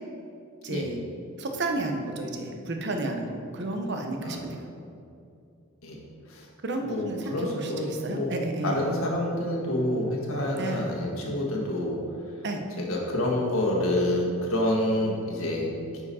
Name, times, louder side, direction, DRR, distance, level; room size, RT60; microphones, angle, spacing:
voice 1, 0.6-1.0 1.4-4.6 6.6-8.9 10.5-10.9 12.4-12.6, right 2 dB, 55° right, 4 dB, 0.8 m, -31 dB
voice 2, 6.9-8.3 8.6-12.0 12.3-12.4 12.8-15.7, left 1 dB, 85° left, -1 dB, 1.5 m, -28 dB
9.6 x 4.9 x 4.2 m, 2.5 s
head